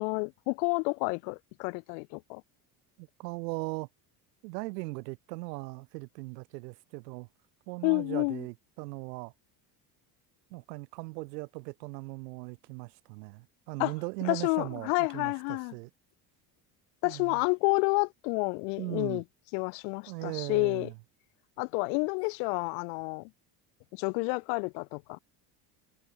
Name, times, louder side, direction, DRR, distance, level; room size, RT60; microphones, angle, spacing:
voice 1, 0.0-2.4 7.8-8.4 13.8-13.9 14.2-15.7 17.0-19.2 19.5-20.9 21.6-23.3 23.9-25.2, left 40 dB or more, 80° left, 0.8 m, -29 dB
voice 2, 3.0-3.9 4.4-7.3 7.7-9.3 10.5-15.9 17.0-17.4 18.8-19.2 20.1-20.9, right 25 dB, 85° right, 3.4 m, -39 dB
supercardioid pair, 85°, 48 cm